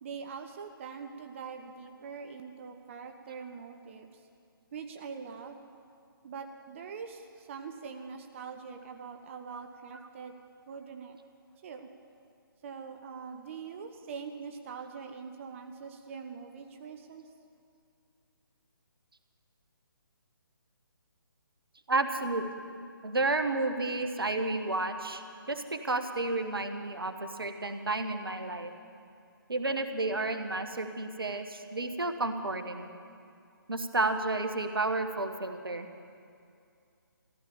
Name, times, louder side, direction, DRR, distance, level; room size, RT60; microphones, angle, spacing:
voice 1, 0.0-4.2 4.7-5.6 6.2-10.3 10.7-11.2 11.6-11.9 12.6-17.2, right 5 dB, 35° right, 5 dB, 0.8 m, -43 dB
voice 2, 21.9-22.4 23.0-25.2 25.5-28.7 29.5-32.9 33.7-35.9, right 2 dB, 80° right, 7 dB, 1.3 m, -31 dB
15.0 x 11.5 x 7.1 m, 2.4 s
figure-of-eight pair, 145°, 12 cm